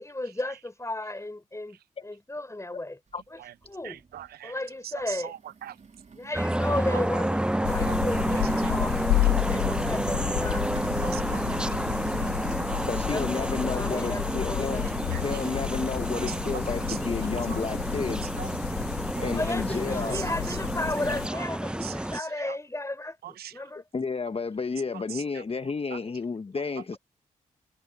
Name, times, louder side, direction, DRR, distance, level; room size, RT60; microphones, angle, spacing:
voice 1, 0.0-3.0 3.3-3.4 3.7-4.0 4.4-5.3 6.1-9.1 9.4-10.7 13.1-15.0 19.3-23.8 26.0-26.1, left 2 dB, 20° left, 4.6 m, -34 dB
sound 1, 3.1-3.2 3.6-4.3 4.9-18.1, right 5 dB, 45° right, 3.0 m, -44 dB
voice 2, 3.8-4.6 4.8-5.8 6.9-7.0 7.9-8.9 9.2-9.3 9.7-9.8 11.0-11.8 12.7-12.8 15.1-15.4 16.1-16.6 16.9-17.0 17.3-17.6 18.4-18.5 19.2-19.3 20.1-20.6 21.3-21.5 21.8-22.6 23.2-23.6 24.9-26.0, right 11 dB, 70° right, 0.7 m, -42 dB
sound 2, 6.3-22.2, right 1 dB, 5° right, 0.7 m, -30 dB
sound 3, 7.6-21.3, left 19 dB, 90° left, 0.6 m, -32 dB
voice 3, 12.9-14.8 15.2-18.2 19.2-20.2 23.9-27.0, left 4 dB, 35° left, 1.2 m, -31 dB
hypercardioid pair, 40°, 17 cm